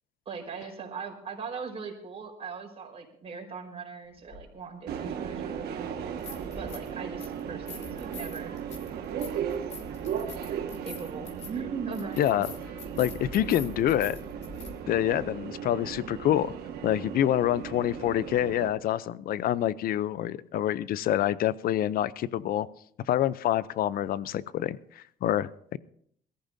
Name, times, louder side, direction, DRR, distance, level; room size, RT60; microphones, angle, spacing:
voice 1, 0.2-6.2 6.6-8.6 10.8-12.6, right 5 dB, 35° right, 1 dB, 4.8 m, -39 dB
sound 1, 4.3-4.4 6.0-6.9 7.2-14.7, left 3 dB, 45° left, 4.1 m, -44 dB
Subway metro underground, 4.9-18.7, right 8 dB, 70° right, 1.7 m, -37 dB
voice 2, 12.2-12.5 13.0-14.2 14.9-16.5 16.8-22.7 23.1-25.8, left 12 dB, 60° left, 18 dB, 0.6 m, -27 dB
21.5 x 14.5 x 2.7 m, 0.64 s
cardioid pair, 110°, 17 cm